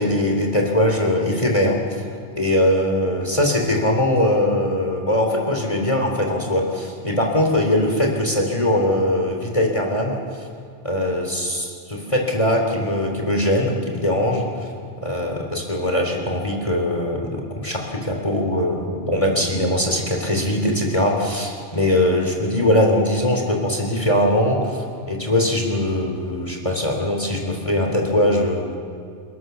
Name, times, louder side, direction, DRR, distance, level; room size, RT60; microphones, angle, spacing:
voice 1, 0.0-2.1 2.4-10.5 10.8-14.7 15.0-28.8, left 1 dB, 25° left, 1 dB, 3.7 m, -21 dB
29.5 x 18.0 x 7.1 m, 2.4 s
omnidirectional pair, 1.2 m